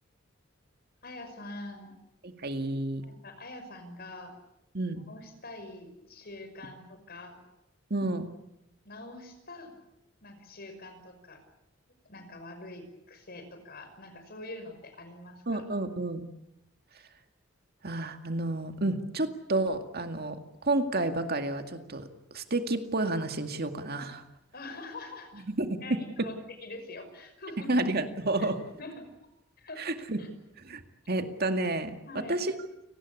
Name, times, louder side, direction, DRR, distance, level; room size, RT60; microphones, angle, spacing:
voice 1, 1.0-1.9 3.1-4.3 4.9-7.4 8.8-9.7 10.2-11.4 12.0-15.6 24.5-25.5 25.8-27.7 28.4-28.5 28.8-29.1 29.6-29.8 30.2-30.3 32.1-32.3, left 2 dB, 50° left, 8 dB, 5.7 m, -44 dB
voice 2, 2.2-3.0 4.7-5.0 7.9-8.3 15.5-16.3 17.8-24.2 25.5-25.8 26.2-26.3 27.7-28.6 29.8-30.2 30.6-30.8 31.1-31.9 32.3-32.5, right 2 dB, 50° right, 7 dB, 2.2 m, -30 dB
29.5 x 19.5 x 8.6 m, 0.85 s
head